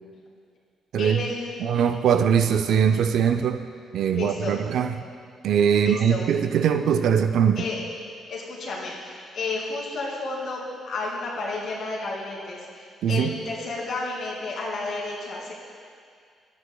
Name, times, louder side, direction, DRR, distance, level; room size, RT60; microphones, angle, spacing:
voice 1, 1.0-1.6 4.1-4.5 5.8-6.2 7.6-7.8 8.3-15.5, left 3 dB, 65° left, -4 dB, 2.4 m, -32 dB
voice 2, 1.6-3.6 3.9-4.9 5.4-7.6 13.0-13.4, right 7 dB, 75° right, 8 dB, 0.4 m, -21 dB
12.5 x 9.6 x 2.2 m, 2.2 s
cardioid pair, 90°, 0 cm